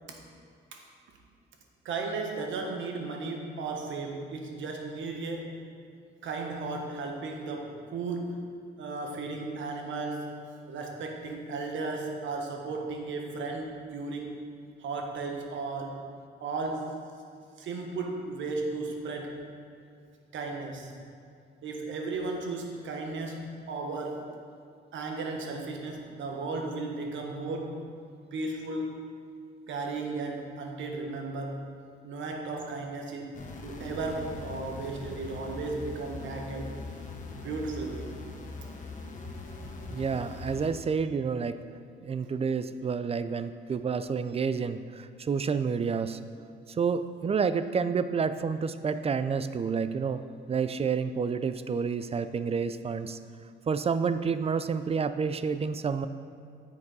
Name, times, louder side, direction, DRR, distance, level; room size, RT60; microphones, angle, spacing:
voice 1, 1.8-5.7 6.2-10.3 10.7-14.4 14.8-16.1 16.4-16.9 17.6-19.4 20.3-21.0 21.6-24.3 24.9-27.8 28.3-29.0 29.7-31.8 32.0-36.8 37.3-38.1, right 3 dB, 75° right, 2 dB, 1.4 m, -35 dB
sound 1, 33.3-40.7, left 3 dB, 40° left, 1.3 m, -41 dB
voice 2, 39.9-41.6 42.0-46.2 46.8-50.2 50.5-53.2 53.7-56.1, right 5 dB, 30° right, 12 dB, 0.4 m, -29 dB
9.8 x 7.3 x 4.1 m, 2.3 s
cardioid pair, 90°, 20 cm